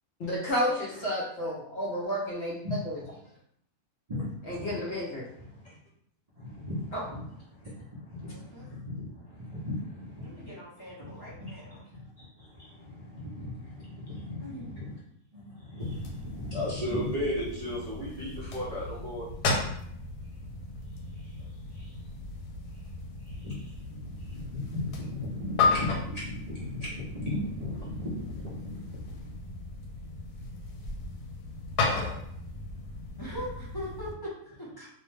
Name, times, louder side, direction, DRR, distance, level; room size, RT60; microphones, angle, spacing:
voice 1, 0.2-2.5 2.8-3.0 4.5-5.2 6.9-7.0, equal, 65° left, -5 dB, 0.7 m, -31 dB
voice 2, 4.1-4.8 5.5-5.8 6.3-10.5 11.0-14.9 15.3-19.3 21.1-21.4 21.7-22.0 23.2-29.3, left 1 dB, 60° right, -7 dB, 0.4 m, -37 dB
voice 3, 8.2-8.7 10.2-11.8 14.4-14.8 33.2-34.3 34.6-34.9, equal, 30° left, -8 dB, 0.4 m, -41 dB
sound 1, 15.8-34.1, left 3 dB, 80° left, 1.1 m, -35 dB
2.6 x 2.1 x 3.1 m, 0.71 s
omnidirectional pair, 1.6 m